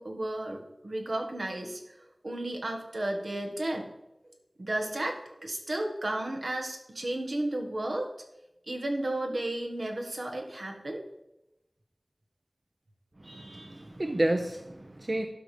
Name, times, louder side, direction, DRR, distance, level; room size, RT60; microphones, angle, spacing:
voice 1, 0.0-3.9 4.6-8.1 8.7-11.0, right 1 dB, 80° right, 2 dB, 1.5 m, -33 dB
voice 2, 13.2-15.3, right 1 dB, 45° right, 5 dB, 0.7 m, -31 dB
12.0 x 5.1 x 5.0 m, 0.88 s
wide cardioid pair, 50°, 0 cm